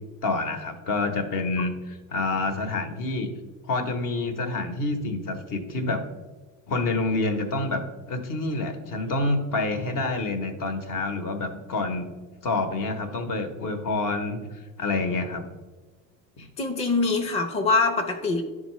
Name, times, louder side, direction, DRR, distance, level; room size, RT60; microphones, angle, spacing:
voice 1, 0.2-3.3 3.6-6.0 6.7-12.1 12.4-14.4 14.8-15.4, left 2 dB, 50° left, 6 dB, 1.1 m, -27 dB
voice 2, 16.4-18.4, left 3 dB, 15° left, 2 dB, 0.6 m, -24 dB
10.0 x 3.7 x 3.1 m, 1.3 s
supercardioid pair, 95°, 43 cm